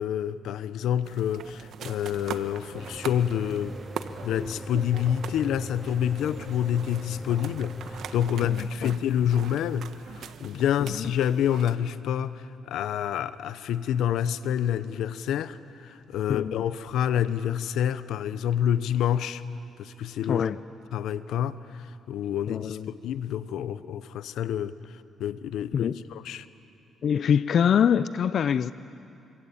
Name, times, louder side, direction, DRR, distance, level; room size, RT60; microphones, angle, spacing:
voice 1, 0.0-3.7 4.2-9.9 10.2-19.4 19.8-20.4 20.9-21.6 22.1-22.8 23.0-24.7 25.2-26.4, left 10 dB, 80° left, 0.9 m, -28 dB
sound 1, 1.0-11.8, right 8 dB, 70° right, 1.2 m, -42 dB
Mechanical fan, 2.7-8.7, equal, 10° right, 0.6 m, -42 dB
voice 2, 8.4-9.0 10.8-11.1 16.3-16.6 20.3-20.6 22.5-22.9 25.7-26.0 27.0-28.7, left 8 dB, 60° left, 0.5 m, -25 dB
26.5 x 24.5 x 8.7 m
cardioid pair, 90°, 0 cm